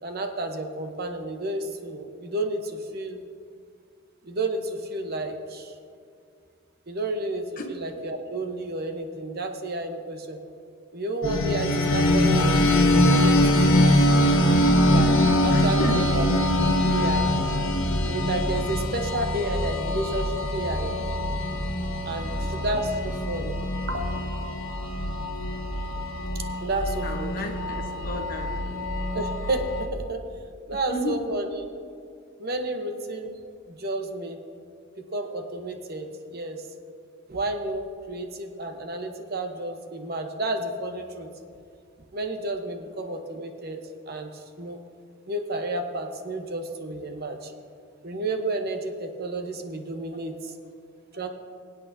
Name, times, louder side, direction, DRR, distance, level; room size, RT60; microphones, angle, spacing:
voice 1, 0.0-3.2 4.2-5.7 6.9-10.4 10.9-13.8 14.7-16.3 16.8-17.2 18.1-21.0 22.1-23.6 23.9-24.9 26.3-27.5 29.1-30.2 30.7-31.5 32.4-33.3 33.7-34.4 35.0-36.7 37.3-41.3 42.1-43.8 44.1-44.8 45.3-47.5 48.0-50.5 51.1-51.3, right 2 dB, 45° right, 4 dB, 0.9 m, -31 dB
sound 1, 11.2-29.9, left 1 dB, 70° left, 1.3 m, -23 dB
voice 2, 15.5-16.0 22.2-22.5 27.0-28.9 30.9-31.2, left 1 dB, 40° left, 3 dB, 1.1 m, -33 dB
25.0 x 8.3 x 2.7 m, 2.3 s
head